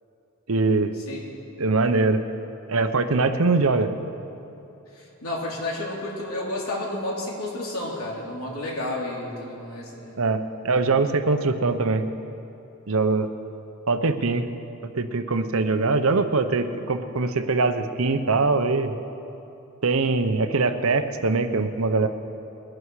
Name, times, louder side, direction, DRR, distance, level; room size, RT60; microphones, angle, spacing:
voice 1, 0.5-0.9 1.6-2.2 2.7-3.9 10.2-12.1 12.9-13.3 13.9-14.5 14.9-18.9 19.8-22.1, right 3 dB, 70° right, 9 dB, 0.8 m, -22 dB
voice 2, 4.9-10.2, left 1 dB, 80° left, -3 dB, 3.2 m, -31 dB
21.5 x 11.0 x 4.8 m, 3.0 s
head